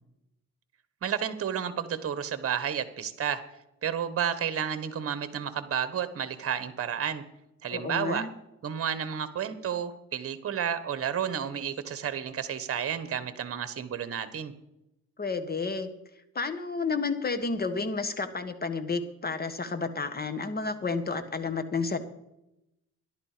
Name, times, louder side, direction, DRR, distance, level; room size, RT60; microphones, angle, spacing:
voice 1, 1.0-3.4 3.8-7.2 7.6-8.3 8.6-14.5, right 8 dB, 50° right, 12 dB, 1.3 m, -31 dB
voice 2, 7.7-8.3 15.2-15.9 16.4-22.0, left 4 dB, 30° left, 10 dB, 1.5 m, -31 dB
13.5 x 11.5 x 5.1 m, 0.87 s
cardioid pair, 90°, 30 cm